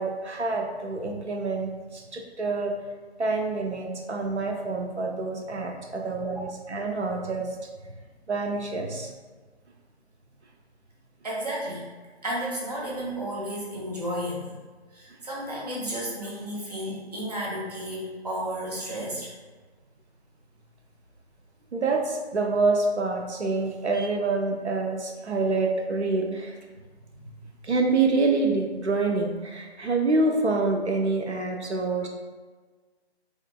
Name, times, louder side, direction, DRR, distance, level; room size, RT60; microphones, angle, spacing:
voice 1, 0.0-2.8 3.2-7.5 8.3-9.1 21.7-26.6 27.6-32.1, right 3 dB, 85° right, 2 dB, 0.6 m, -26 dB
voice 2, 11.2-11.9 12.2-14.6 14.9-19.3 27.1-27.4, equal, 40° right, -4 dB, 0.5 m, -33 dB
3.1 x 2.2 x 2.3 m, 1.4 s
figure-of-eight pair, 155°, 33 cm